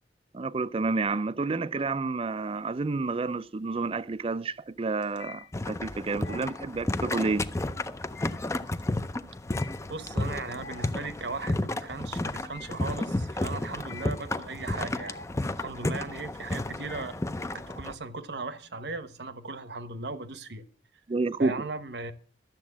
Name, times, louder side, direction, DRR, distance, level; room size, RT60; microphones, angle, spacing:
voice 1, 0.3-7.4 21.1-21.6, right 3 dB, 30° right, 0.4 m, -29 dB
sound 1, 2.2-2.9 3.2-17.7, left 4 dB, 75° left, 0.9 m, -49 dB
sound 2, 5.5-17.9, left 2 dB, 15° left, 0.5 m, -32 dB
voice 2, 9.9-15.2 15.6-20.6 21.4-22.1, right 3 dB, 70° right, 1.1 m, -37 dB
12.0 x 7.5 x 7.3 m
head